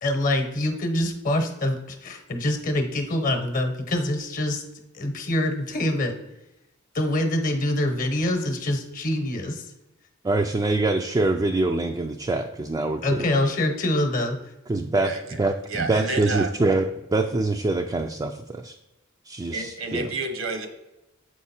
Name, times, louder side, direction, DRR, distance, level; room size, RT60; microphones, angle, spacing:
voice 1, 0.0-4.6 4.9-6.2 6.9-9.6 13.0-14.4, left 1 dB, 40° left, 7 dB, 1.0 m, -25 dB
voice 2, 10.2-13.3 14.7-18.8 19.2-20.1, right 2 dB, 20° right, 3 dB, 0.4 m, -25 dB
voice 3, 15.0-15.4 15.7-16.5 19.5-20.7, right 2 dB, 70° right, 6 dB, 1.0 m, -30 dB
7.3 x 4.8 x 4.3 m, 0.96 s
head